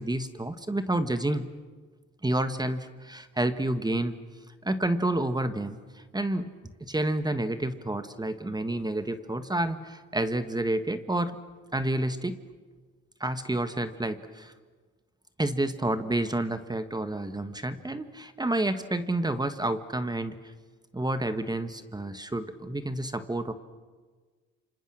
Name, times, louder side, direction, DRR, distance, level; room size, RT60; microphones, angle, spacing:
voice 1, 0.0-1.5 2.2-4.2 4.6-5.8 6.1-6.5 6.8-11.4 11.7-12.4 13.2-14.5 15.4-20.4 20.9-23.5, right 1 dB, 15° right, 10 dB, 1.4 m, -29 dB
28.5 x 26.5 x 6.3 m, 1.4 s
cardioid pair, 90°, 30 cm